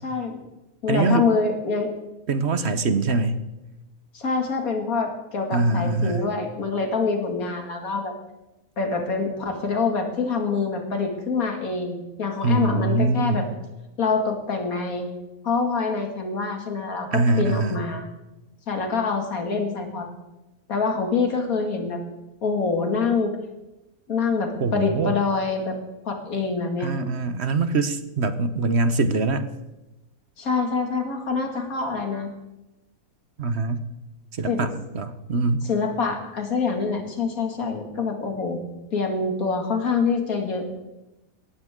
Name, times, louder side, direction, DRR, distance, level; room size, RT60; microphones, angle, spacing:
voice 1, 0.0-0.4 0.8-1.9 4.1-8.2 8.8-13.5 14.0-15.1 15.4-18.0 18.7-20.1 20.7-22.0 22.4-23.3 24.1-25.8 26.1-26.9 30.4-32.3 34.5-34.7 35.7-38.6 38.9-40.6, left 4 dB, 60° left, 4 dB, 2.6 m, -25 dB
voice 2, 0.9-1.2 2.3-3.4 5.5-6.3 12.4-13.5 17.1-17.8 24.6-25.1 26.8-29.5 33.4-33.9 34.3-35.7, right 3 dB, 50° right, 11 dB, 1.1 m, -23 dB
17.5 x 14.5 x 3.7 m, 0.98 s
omnidirectional pair, 1.7 m